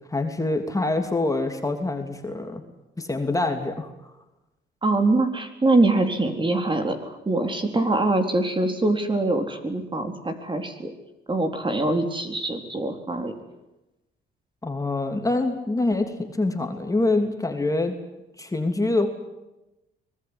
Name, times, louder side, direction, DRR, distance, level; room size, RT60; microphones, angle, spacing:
voice 1, 0.1-2.6 3.0-3.9 14.6-17.9 18.4-19.1, left 2 dB, 15° left, 4 dB, 3.2 m, -25 dB
voice 2, 4.8-10.9 11.3-13.3, right 2 dB, 25° right, 6 dB, 4.1 m, -23 dB
24.5 x 20.0 x 9.9 m, 0.98 s
cardioid pair, 90°, 20 cm